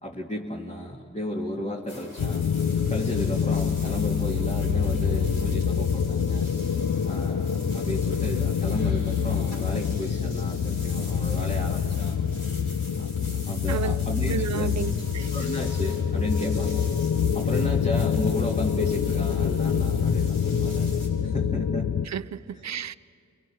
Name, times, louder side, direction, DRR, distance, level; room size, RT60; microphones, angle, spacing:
voice 1, 0.0-2.4 2.9-6.5 7.1-12.2 13.0-13.1 13.5-14.8 15.3-16.9 17.3-21.9, left 1 dB, 20° left, 2.3 m, -34 dB
sound 1, 1.9-21.1, left 1 dB, 85° left, 7.9 m, -45 dB
sound 2, 2.2-22.1, left 7 dB, 70° left, 0.8 m, -26 dB
voice 2, 13.7-14.0 14.3-15.3 22.1-22.9, right 8 dB, 60° right, 0.6 m, -32 dB
29.5 x 24.0 x 6.4 m
cardioid pair, 60°, 31 cm